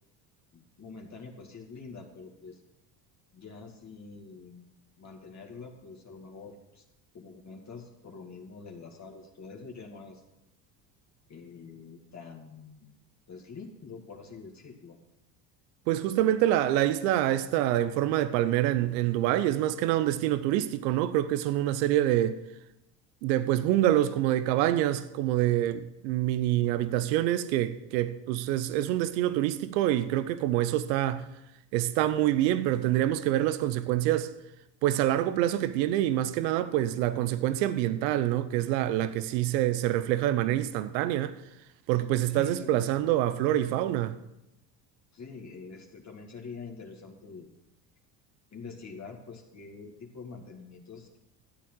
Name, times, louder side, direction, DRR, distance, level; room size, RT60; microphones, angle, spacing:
voice 1, 0.5-2.6 3.3-4.7 5.0-6.8 7.1-10.2 11.3-12.9 13.3-15.0 42.3-42.9 45.1-47.5 48.5-51.2, left 4 dB, 35° left, 2.2 m, -45 dB
voice 2, 15.9-22.4 23.2-31.3 31.7-34.3 34.8-41.3 41.9-44.1, right 13 dB, 80° right, 0.9 m, -26 dB
13.0 x 8.5 x 6.3 m
hypercardioid pair, 75°, 49 cm